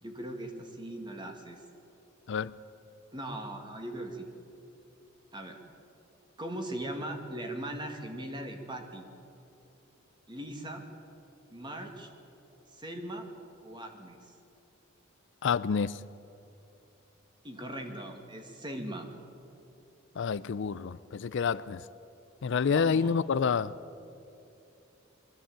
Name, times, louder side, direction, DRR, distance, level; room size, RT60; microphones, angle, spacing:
voice 1, 0.0-1.6 3.1-4.3 5.3-5.6 6.4-9.1 10.3-10.8 11.5-12.1 12.7-13.3 13.6-14.3 17.4-19.1 22.7-23.2, right 1 dB, 25° right, 4 dB, 2.0 m, -39 dB
voice 2, 15.4-16.0 20.2-21.9 22.4-23.8, left 6 dB, 60° left, 17 dB, 0.4 m, -28 dB
21.5 x 14.0 x 8.8 m, 2.7 s
head